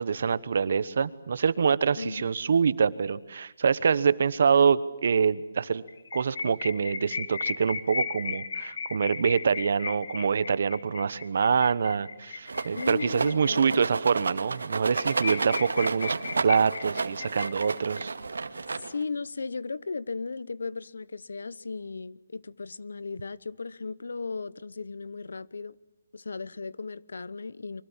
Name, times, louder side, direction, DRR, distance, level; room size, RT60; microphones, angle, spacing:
voice 1, 0.0-5.8 6.1-16.2 16.4-18.1, right 6 dB, 50° right, 1.1 m, -25 dB
voice 2, 2.0-2.3 12.7-13.8 18.8-25.8 26.1-27.8, left 4 dB, 80° left, 0.9 m, -36 dB
sound 1, 5.9-13.8 14.2-14.3 14.6-14.7 14.9-18.0, left 5 dB, 50° left, 1.7 m, -36 dB
Rattle, 12.5-19.2, right 4 dB, 90° right, 2.1 m, -32 dB
29.0 x 24.5 x 7.4 m
hypercardioid pair, 175°, 0 cm